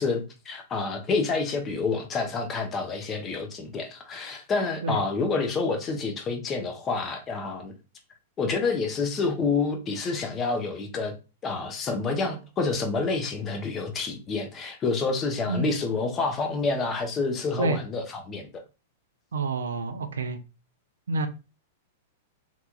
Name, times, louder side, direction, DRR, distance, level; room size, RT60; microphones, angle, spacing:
voice 1, 0.0-7.7 8.4-11.1 11.4-18.6, left 4 dB, 25° left, 0.7 m, -28 dB
voice 2, 19.3-20.4 21.1-21.3, right 3 dB, 70° right, 0.4 m, -28 dB
3.3 x 2.9 x 2.3 m
figure-of-eight pair, 100°, 0 cm